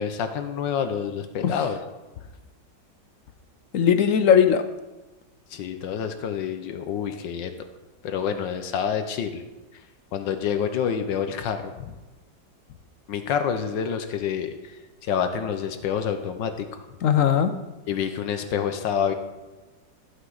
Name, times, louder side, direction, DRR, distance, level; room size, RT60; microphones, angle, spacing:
voice 1, 0.0-1.8 5.5-7.5 8.0-9.4 10.1-11.9 13.1-14.7 15.0-16.7 17.9-19.1, left 7 dB, 80° left, 8 dB, 1.5 m, -27 dB
voice 2, 3.7-4.6 17.0-17.5, left 8 dB, 65° left, 9 dB, 0.8 m, -18 dB
14.5 x 7.8 x 4.0 m, 1.1 s
omnidirectional pair, 2.0 m